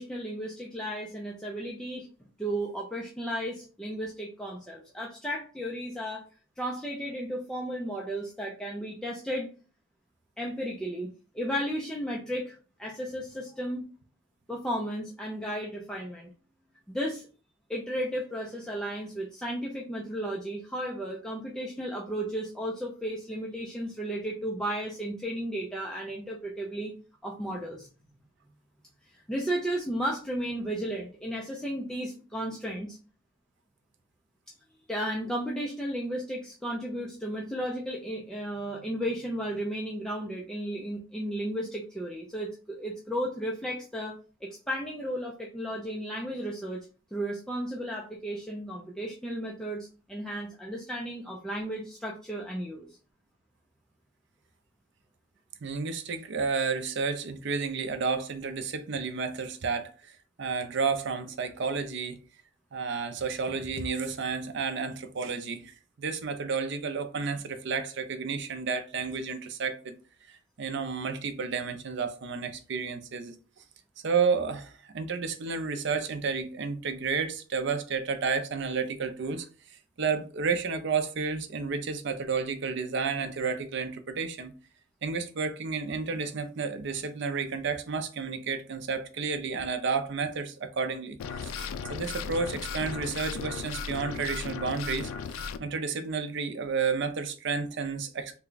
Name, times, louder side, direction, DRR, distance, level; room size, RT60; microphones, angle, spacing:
voice 1, 0.0-2.1 2.4-6.2 6.6-9.5 10.4-13.9 14.5-16.3 16.9-17.3 17.7-26.9 27.2-27.9 29.1-33.0 34.9-52.9, equal, 5° left, 0.4 m, -34 dB
voice 2, 55.6-62.2 62.7-70.0 70.3-73.3 74.0-84.5 85.0-95.1 95.6-98.4, right 5 dB, 60° right, 0.5 m, -31 dB
sound 1, 91.2-95.6, left 6 dB, 85° left, 0.3 m, -36 dB
3.3 x 2.2 x 3.8 m
head